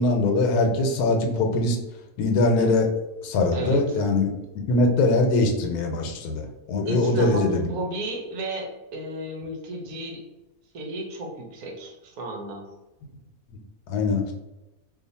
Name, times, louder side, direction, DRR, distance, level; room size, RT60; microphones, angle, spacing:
voice 1, 0.0-1.8 2.2-2.9 3.2-4.3 4.7-7.7 13.9-14.2, left 2 dB, 80° left, 3 dB, 1.1 m, -22 dB
voice 2, 3.5-4.0 6.8-10.2 10.7-12.7, right 1 dB, 70° right, 1 dB, 1.2 m, -33 dB
2.7 x 2.4 x 4.0 m, 1.0 s
omnidirectional pair, 1.7 m